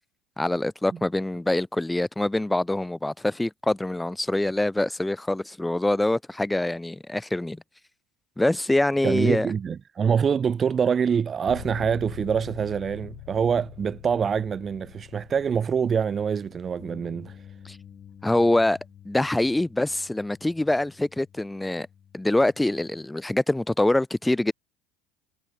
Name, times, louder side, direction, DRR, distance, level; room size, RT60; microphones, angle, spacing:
voice 1, 0.4-7.6 8.4-9.5 17.6-17.8 18.2-18.8 19.0-21.9 22.1-24.5, left 1 dB, 10° left, 1.4 m, -24 dB
voice 2, 9.0-17.4, right 7 dB, 35° right, 0.3 m, -25 dB
sound 1, 11.4-19.2, left 27 dB, 70° left, 3.1 m, -45 dB
Bass guitar, 16.8-23.0, left 8 dB, 40° left, 7.2 m, -50 dB
hypercardioid pair, 75°, 0 cm